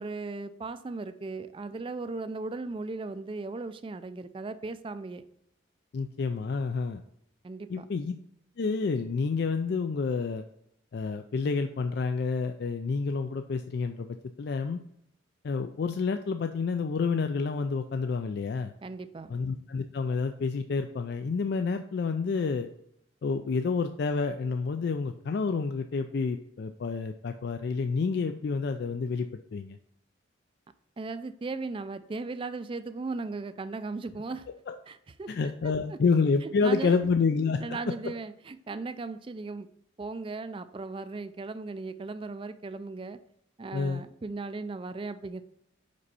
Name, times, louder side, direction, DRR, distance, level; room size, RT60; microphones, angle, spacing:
voice 1, 0.0-5.2 7.4-7.9 18.8-19.3 31.0-34.5 34.9-35.3 35.6-36.0 36.4-36.9 37.6-39.7 40.0-43.2 43.6-45.4, right 3 dB, 25° right, 12 dB, 0.3 m, -37 dB
voice 2, 5.9-7.0 7.7-8.1 8.6-10.4 10.9-14.1 14.4-14.8 15.4-18.7 19.3-22.7 23.2-29.8 34.7-34.8 35.3-38.1 43.7-44.0, left 4 dB, 55° left, 7 dB, 0.3 m, -29 dB
5.4 x 5.2 x 4.1 m, 0.75 s
head